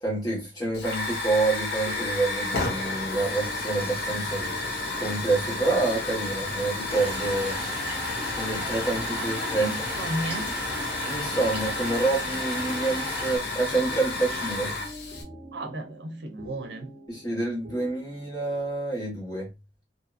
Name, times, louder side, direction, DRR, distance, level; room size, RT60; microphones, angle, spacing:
voice 1, 0.0-4.5 5.0-7.6 8.4-9.7 11.0-14.7 17.1-19.5, right 2 dB, 25° left, 1.4 m, -27 dB
Hiss / Fire, 0.7-15.2, left 2 dB, 65° left, 0.9 m, -31 dB
sound 1, 1.8-18.6, left 1 dB, 35° right, 0.9 m, -46 dB
sound 2, 6.9-13.4, equal, 10° right, 1.2 m, -37 dB
voice 2, 9.1-10.6 15.5-16.9, right 1 dB, 70° right, 0.7 m, -34 dB
2.7 x 2.7 x 2.3 m
head